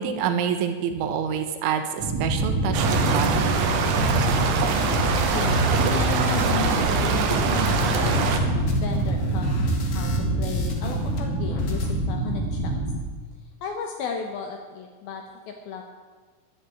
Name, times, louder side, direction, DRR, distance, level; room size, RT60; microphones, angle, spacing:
voice 1, 0.0-3.6, right 8 dB, 85° right, 7 dB, 3.6 m, -27 dB
sound 1, 2.0-12.9, right 2 dB, 35° right, 3.4 m, -26 dB
sound 2, 2.7-8.4, right 6 dB, 65° right, 2.8 m, -25 dB
sound 3, 3.9-11.2 11.5-11.9, left 1 dB, 55° left, 1.7 m, -30 dB
voice 2, 5.3-12.8 13.6-15.9, left 6 dB, 70° left, 4 dB, 2.4 m, -34 dB
11.5 x 10.5 x 9.2 m, 1.5 s
omnidirectional pair, 5.3 m